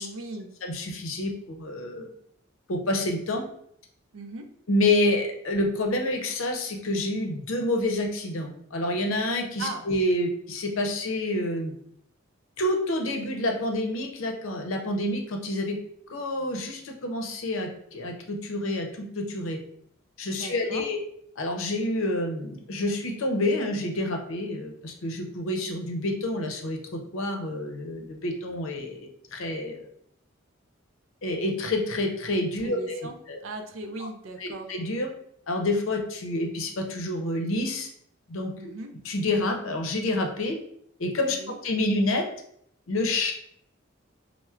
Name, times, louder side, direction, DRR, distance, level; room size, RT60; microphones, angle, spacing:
voice 1, 0.0-0.5 4.1-4.5 9.6-9.8 20.3-20.8 32.6-33.2 33.4-34.7 38.6-38.9 41.3-41.6, right 2 dB, 75° right, 6 dB, 0.4 m, -38 dB
voice 2, 0.6-2.1 2.7-3.4 4.7-11.7 12.6-15.8 16.1-19.6 20.2-21.0 21.4-29.9 31.2-33.4 34.4-35.1 35.5-37.9 38.3-38.5 39.0-40.6 41.0-42.2 42.9-43.3, left 1 dB, 80° left, 3 dB, 0.6 m, -28 dB
4.3 x 2.0 x 2.4 m, 0.67 s
head